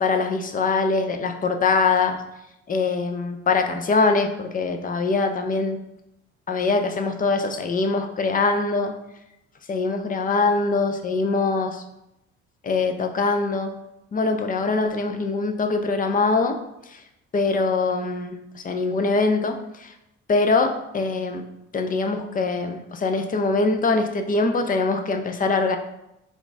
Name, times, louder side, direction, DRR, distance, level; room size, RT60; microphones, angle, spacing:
voice 1, 0.0-2.2 2.7-5.8 6.5-8.9 9.7-11.8 12.6-13.7 14.1-16.6 16.9-17.0 17.3-19.9 20.3-21.4 21.7-25.8, left 3 dB, 30° left, 7 dB, 0.5 m, -23 dB
3.6 x 2.3 x 4.0 m, 0.87 s
supercardioid pair, 85°, 29 cm